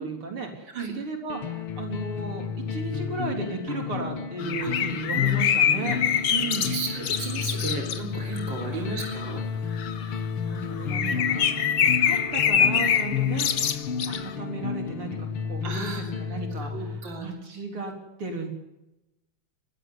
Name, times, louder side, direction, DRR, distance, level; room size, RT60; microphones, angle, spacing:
voice 1, 0.0-6.0 6.3-6.8 8.7-8.9 10.0-13.8 14.1-17.9 18.2-18.5, right 3 dB, 80° right, 2 dB, 4.7 m, -35 dB
sound 1, 1.3-17.2, left 7 dB, 80° left, 2.5 m, -32 dB
sound 2, 4.4-8.0 8.3-8.7 9.0-9.4 9.8-10.2 10.6-14.3, left 8 dB, 60° left, 1.6 m, -25 dB
voice 2, 6.6-9.8 11.0-11.1 15.6-16.4 16.7-17.3, right 4 dB, 60° right, 1 dB, 4.2 m, -35 dB
21.0 x 16.0 x 10.0 m, 0.93 s
omnidirectional pair, 2.4 m